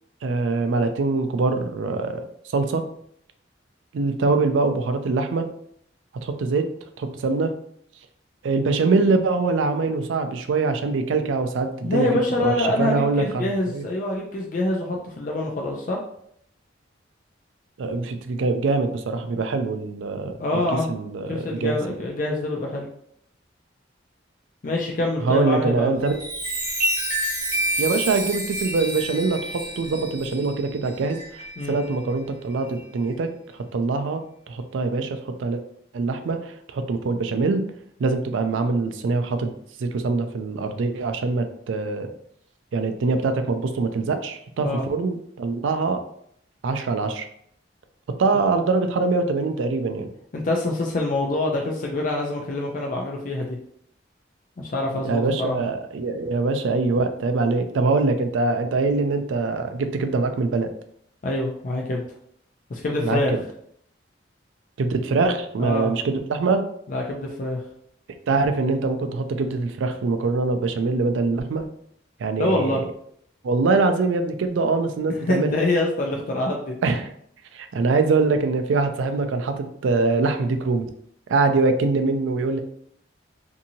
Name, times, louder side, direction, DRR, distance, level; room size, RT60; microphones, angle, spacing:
voice 1, 0.2-2.2 2.5-2.8 3.9-5.5 6.2-6.7 7.0-7.5 8.4-12.1 12.4-13.5 13.7-13.8 17.8-20.6 20.9-21.8 25.2-26.1 27.8-35.6 35.9-37.6 38.0-39.5 39.8-42.1 42.7-46.0 46.6-47.2 48.2-50.1 55.1-60.7 63.0-63.4 64.8-66.6 68.3-71.7 72.2-72.8 73.4-75.5 76.8-77.1 77.5-80.9 81.3-82.6, right 3 dB, 85° right, 7 dB, 0.4 m, -23 dB
voice 2, 11.8-16.0 20.4-20.9 21.3-22.9 24.6-25.9 31.6-31.7 44.6-44.8 50.3-53.6 54.6-55.6 61.2-62.0 62.7-63.3 65.6-65.9 66.9-67.6 72.4-72.8 75.1-76.8, left 2 dB, 45° left, -1 dB, 0.4 m, -25 dB
Chime, 25.9-31.9 32.5-32.8, right 1 dB, 45° right, 1.2 m, -29 dB
2.7 x 2.7 x 2.6 m, 0.68 s
head